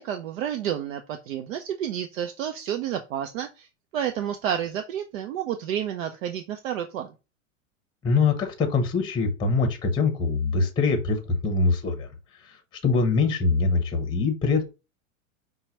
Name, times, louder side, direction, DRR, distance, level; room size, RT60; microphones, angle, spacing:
voice 1, 0.0-7.1, right 9 dB, 75° right, 6 dB, 0.7 m, -30 dB
voice 2, 8.0-12.1 12.4-12.6 12.8-14.6, left 4 dB, 10° left, 6 dB, 0.8 m, -23 dB
5.4 x 2.2 x 4.4 m, 0.29 s
supercardioid pair, 140°, 40 cm